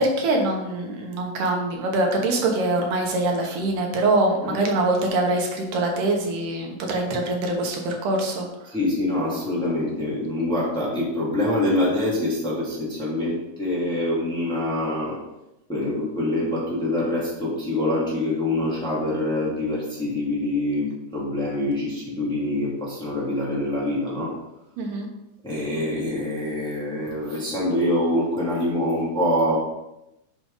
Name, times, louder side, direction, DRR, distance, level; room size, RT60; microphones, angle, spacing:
voice 1, 0.0-8.7 24.8-25.1, right 2 dB, 85° right, 1 dB, 2.8 m, -24 dB
voice 2, 8.7-15.2 15.7-24.3 25.4-29.6, left 1 dB, ahead, -6 dB, 1.9 m, -25 dB
7.6 x 6.2 x 4.0 m, 0.90 s
omnidirectional pair, 3.6 m